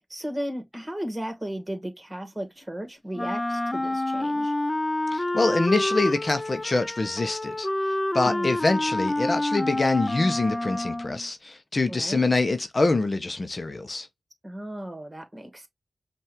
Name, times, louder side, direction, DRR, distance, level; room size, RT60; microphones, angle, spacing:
voice 1, 0.1-4.5 8.2-8.6 11.9-12.2 14.4-15.7, equal, 20° right, 2.1 m, -35 dB
Wind instrument woodwind instrument, 3.1-11.3, left 1 dB, 25° left, 0.5 m, -28 dB
voice 2, 5.1-7.7 8.1-14.1, left 2 dB, 50° left, 0.9 m, -25 dB
5.4 x 2.6 x 3.6 m
cardioid pair, 40°, 0 cm